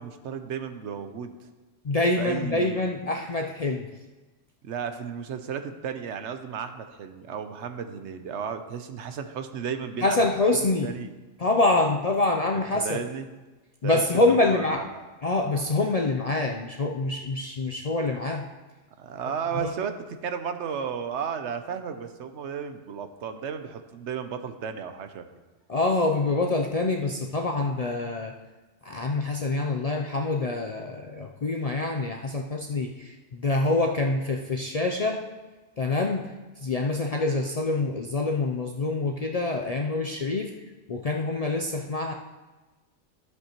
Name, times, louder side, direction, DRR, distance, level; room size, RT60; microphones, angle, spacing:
voice 1, 0.0-1.3 2.2-3.1 4.6-10.2 10.8-11.1 12.7-13.3 13.8-15.0 19.0-25.3, right 7 dB, 70° right, 8 dB, 1.0 m, -34 dB
voice 2, 1.8-3.9 10.0-10.9 11.4-13.0 13.8-14.9 15.2-18.5 19.5-19.7 25.7-28.3 28.8-35.2 35.8-36.3 36.6-40.5 40.9-42.1, left 2 dB, 50° left, 1 dB, 0.4 m, -26 dB
13.0 x 7.9 x 3.0 m, 1.2 s
omnidirectional pair, 1.2 m